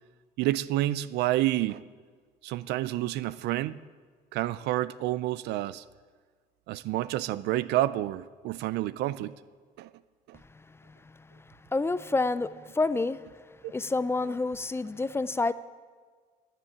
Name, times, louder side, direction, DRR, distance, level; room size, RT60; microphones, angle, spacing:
voice 1, 0.4-1.8 2.4-3.8 4.3-5.8 6.7-9.3 9.8-9.9 10.3-10.4 13.6-13.7, right 15 dB, 80° right, 0.5 m, -29 dB
voice 2, 10.9-11.4 11.7-13.3 13.7-15.5, left 3 dB, 15° left, 0.4 m, -29 dB
13.0 x 7.6 x 9.8 m
cardioid pair, 110°, 17 cm